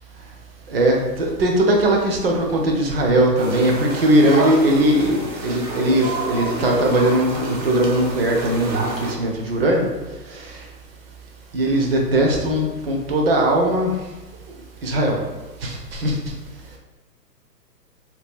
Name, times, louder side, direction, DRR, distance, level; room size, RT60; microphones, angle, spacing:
voice 1, 0.7-9.8 11.5-13.9 14.8-15.2 15.6-16.2, right 1 dB, 40° right, 1 dB, 0.5 m, -19 dB
sound 1, 3.4-9.1, right 1 dB, 70° right, 1.1 m, -29 dB
2.8 x 2.2 x 3.5 m, 1.2 s
hypercardioid pair, 130°, 50 cm